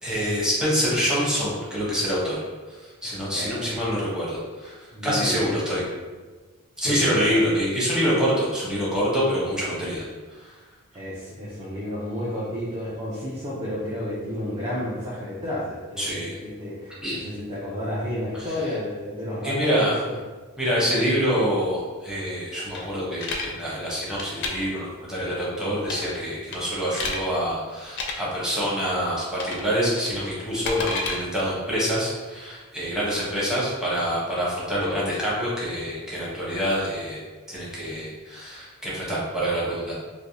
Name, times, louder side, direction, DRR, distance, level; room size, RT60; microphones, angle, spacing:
voice 1, 0.0-2.4 2.7-5.8 6.8-10.0 10.3-10.5 16.0-16.4 17.0-17.2 19.4-19.9 20.6-37.2 37.5-39.9, equal, 5° right, -8 dB, 0.9 m, -26 dB
voice 2, 3.3-3.7 4.9-5.9 6.8-7.4 10.9-20.1 33.1-33.5, left 1 dB, 25° right, -8 dB, 0.6 m, -31 dB
sound 1, 22.7-23.5 24.1-24.5 25.8-26.2 26.5-27.2 27.9-28.1 29.4-29.7 30.0-31.2, left 3 dB, 55° left, 0.5 m, -30 dB
3.3 x 2.6 x 2.7 m, 1.3 s
head